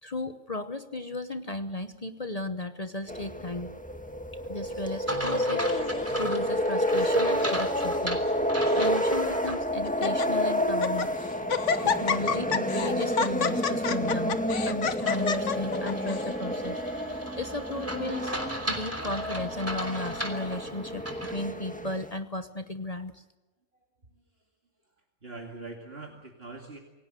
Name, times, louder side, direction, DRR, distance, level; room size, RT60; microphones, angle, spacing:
voice 1, 0.0-3.7 4.5-8.2 8.7-11.1 11.8-18.4 18.7-23.2, left 2 dB, 35° left, 10 dB, 1.0 m, -35 dB
sound 1, 3.1-22.2, equal, 5° left, 1.7 m, -29 dB
sound 2, 5.1-9.6 10.0-10.1 15.1-21.4, right 1 dB, 10° right, 3.3 m, -36 dB
Laughter, 5.2-6.1 6.8-7.1 7.4-7.5 8.3-8.9 9.4-9.5 9.9-10.3 10.7-11.1 11.5-16.3, left 6 dB, 70° left, 1.5 m, -30 dB
voice 2, 25.2-26.8, right 3 dB, 50° right, 2 dB, 2.6 m, -42 dB
27.5 x 17.5 x 7.7 m, 1.1 s
omnidirectional pair, 1.3 m